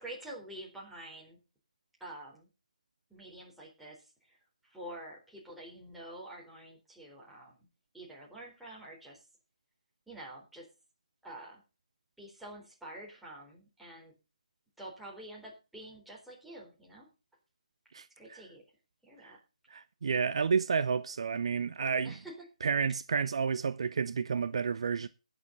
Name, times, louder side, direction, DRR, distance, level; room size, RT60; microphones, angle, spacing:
voice 1, 0.0-1.4 2.0-2.5 3.1-4.4 4.6-7.7 7.9-9.3 10.1-10.7 11.2-11.6 12.2-14.1 14.8-17.1 18.2-18.6 19.0-19.4 22.0-22.4, right 1 dB, ahead, 4.2 m, -47 dB
voice 2, 17.9-18.4 19.2-19.3 19.7-22.1 22.6-25.1, right 6 dB, 55° right, 0.7 m, -31 dB
19.5 x 6.9 x 4.0 m
figure-of-eight pair, 150°, 4 cm